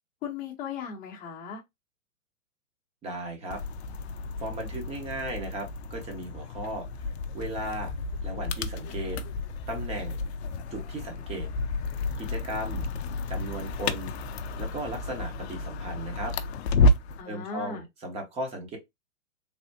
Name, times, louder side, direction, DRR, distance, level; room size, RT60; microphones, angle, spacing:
voice 1, 0.2-1.6 17.2-17.8, left 6 dB, 20° left, 0.9 m, -37 dB
voice 2, 3.0-3.6 4.4-6.9 7.3-7.9 8.2-9.2 9.7-10.2 10.7-11.5 12.2-12.9 13.3-14.1 14.6-16.3 17.2-18.8, right 1 dB, 15° right, 0.9 m, -36 dB
sound 1, 3.5-17.2, left 2 dB, 55° left, 0.5 m, -31 dB
3.4 x 2.1 x 2.7 m
hypercardioid pair, 140°, 39 cm